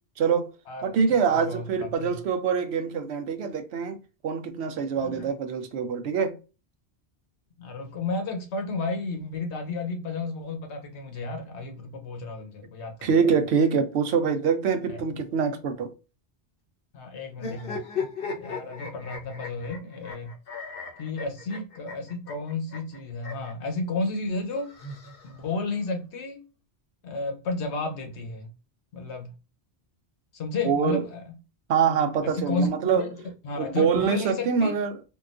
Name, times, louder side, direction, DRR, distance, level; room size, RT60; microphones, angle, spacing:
voice 1, 0.2-0.5 0.8-6.4 13.0-15.9 30.7-31.0 31.7-33.1 33.6-34.9, right 6 dB, 75° right, 0.9 m, -25 dB
voice 2, 1.3-1.6 1.9-2.2 5.0-5.3 7.6-13.2 14.9-15.0 16.9-17.8 18.4-20.3 21.0-24.7 25.2-26.4 27.0-28.5 28.9-29.3 30.3-31.4 32.2-34.8, left 3 dB, 85° left, 1.1 m, -32 dB
sound 1, 17.3-23.5 24.5-25.6, left 4 dB, 60° left, 0.9 m, -37 dB
3.7 x 2.3 x 2.4 m
omnidirectional pair, 1.1 m